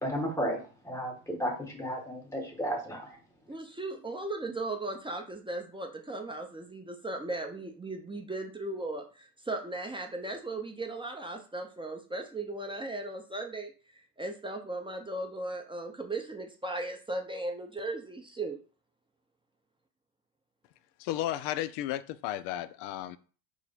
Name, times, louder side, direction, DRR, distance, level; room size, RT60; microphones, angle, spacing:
voice 1, 0.0-3.2, equal, 5° left, 1.8 m, -33 dB
voice 2, 3.5-13.7 14.2-18.6, right 2 dB, 10° right, 0.6 m, -37 dB
voice 3, 21.0-23.2, left 13 dB, 55° left, 0.5 m, -33 dB
4.0 x 2.2 x 4.2 m
hypercardioid pair, 70°, 49 cm